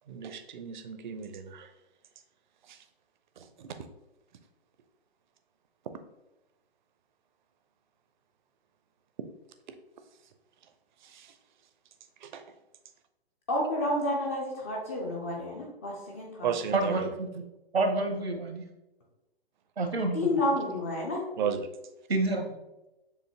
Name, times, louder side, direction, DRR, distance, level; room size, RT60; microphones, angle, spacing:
voice 1, 0.1-1.7 2.7-2.8 3.6-3.7 11.0-11.3 12.2-12.4 16.4-17.1 21.4-21.7, right 7 dB, 50° right, 8 dB, 0.5 m, -34 dB
voice 2, 13.5-16.5 20.1-21.2, left 1 dB, 15° left, -1 dB, 0.3 m, -30 dB
voice 3, 16.7-17.4 17.7-18.6 19.8-20.3 22.1-22.6, right 2 dB, 80° right, 5 dB, 0.9 m, -28 dB
6.7 x 2.6 x 2.8 m, 0.97 s
figure-of-eight pair, 120°, 30 cm